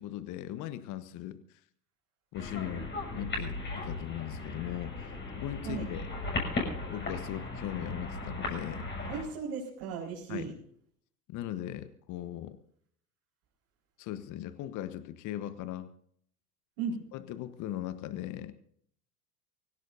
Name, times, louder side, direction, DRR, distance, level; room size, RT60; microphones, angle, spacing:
voice 1, 0.0-1.6 2.3-6.1 6.9-8.9 10.3-10.5 11.3-12.6 14.0-15.9 17.1-18.5, left 12 dB, 40° left, 13 dB, 1.2 m, -39 dB
sound 1, 2.3-9.2, left 3 dB, 25° left, 6.9 m, -37 dB
voice 2, 9.1-10.5 16.8-17.0, right 5 dB, 50° right, -5 dB, 5.0 m, -36 dB
24.5 x 16.5 x 2.7 m, 0.63 s
figure-of-eight pair, 75°, 47 cm